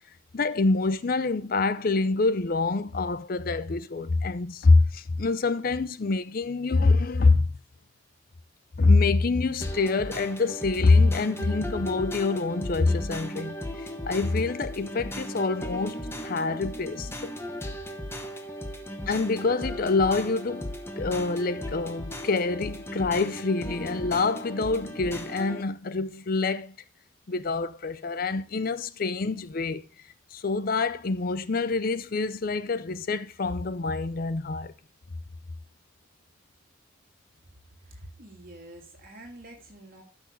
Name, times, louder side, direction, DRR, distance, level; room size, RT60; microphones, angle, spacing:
voice 1, 0.3-7.5 8.8-17.3 19.1-20.7 21.0-26.7 27.3-29.8 30.3-34.7, left 3 dB, 45° left, 0.5 m, -25 dB
sound 1, 9.6-25.6, equal, 10° left, 1.0 m, -36 dB
voice 2, 37.7-40.0, right 1 dB, 45° right, 2.9 m, -47 dB
12.5 x 6.1 x 3.9 m
head